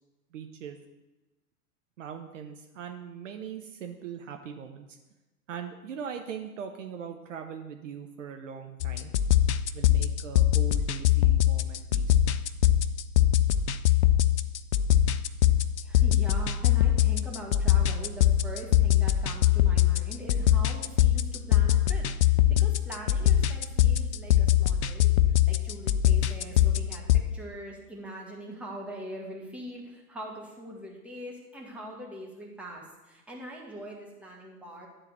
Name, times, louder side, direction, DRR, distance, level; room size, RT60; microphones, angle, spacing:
voice 1, 0.3-0.8 2.0-4.9 5.5-9.1 9.7-12.2, right 7 dB, 55° right, 5 dB, 0.8 m, -40 dB
sound 1, 8.8-27.2, left 12 dB, 50° left, 0.4 m, -23 dB
voice 2, 15.8-22.0 22.5-25.2 25.4-27.0 27.3-34.9, right 1 dB, 5° right, -3 dB, 1.4 m, -42 dB
10.5 x 3.9 x 6.6 m, 1.1 s
figure-of-eight pair, 100°, 46 cm